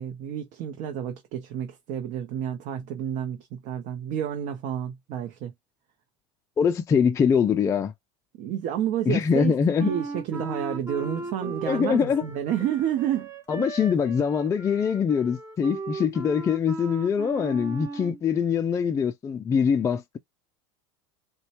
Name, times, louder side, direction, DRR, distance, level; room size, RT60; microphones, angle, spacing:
voice 1, 0.0-5.5 8.4-9.5 9.8-13.3 13.6-13.7, right 10 dB, 55° right, 0.7 m, -30 dB
voice 2, 6.6-7.9 9.1-9.9 11.4-12.3 13.5-20.2, left 6 dB, 20° left, 0.3 m, -23 dB
Wind instrument woodwind instrument, 9.8-18.2, right 3 dB, 20° right, 0.9 m, -37 dB
4.1 x 2.2 x 2.8 m
supercardioid pair, 115°, 15 cm